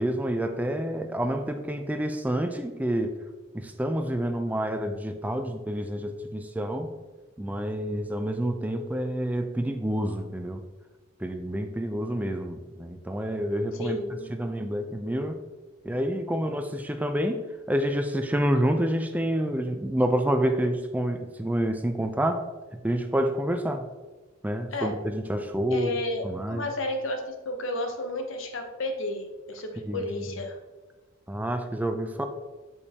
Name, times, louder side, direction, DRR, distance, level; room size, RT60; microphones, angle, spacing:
voice 1, 0.0-3.2 3.5-6.9 7.4-10.6 11.2-14.0 14.3-15.4 15.8-17.4 17.7-22.4 22.8-23.9 24.4-25.9 26.2-26.7 29.9-30.0 31.3-32.2, equal, 10° right, 6 dB, 0.4 m, -28 dB
voice 2, 13.8-14.4 24.7-24.9 25.7-26.2 26.5-30.6, left 2 dB, 65° left, 4 dB, 0.8 m, -32 dB
6.3 x 5.4 x 2.8 m, 1.2 s
head